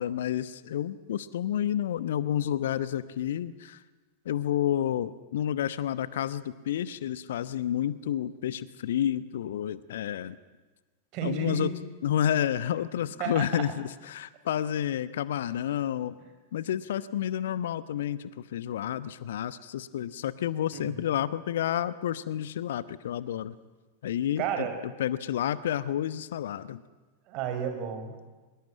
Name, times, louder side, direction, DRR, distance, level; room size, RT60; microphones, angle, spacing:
voice 1, 0.0-3.8 4.2-10.4 11.2-11.7 12.0-16.2 16.5-23.6 24.0-24.7 25.0-26.8, left 10 dB, 60° left, 16 dB, 1.0 m, -30 dB
voice 2, 11.1-11.7 13.2-13.5 20.7-21.0 24.4-24.8 27.3-28.3, right 8 dB, 40° right, 6 dB, 5.2 m, -32 dB
24.0 x 22.5 x 8.7 m, 1.2 s
figure-of-eight pair, 90°, 0 cm